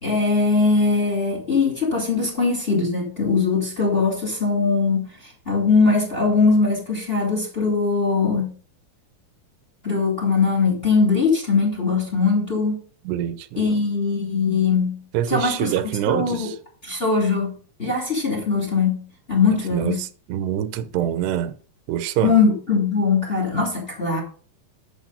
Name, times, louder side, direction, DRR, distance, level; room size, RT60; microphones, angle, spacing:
voice 1, 0.0-5.1 5.5-8.5 9.8-12.7 13.6-15.0 15.3-15.7 16.1-16.5 16.8-17.5 17.8-20.0 22.2-24.2, left 4 dB, 15° left, 2.6 m, -21 dB
voice 2, 13.0-13.8 15.1-16.6 19.7-21.5 21.9-22.4, right 11 dB, 90° right, 2.9 m, -25 dB
11.5 x 8.0 x 4.0 m
omnidirectional pair, 4.7 m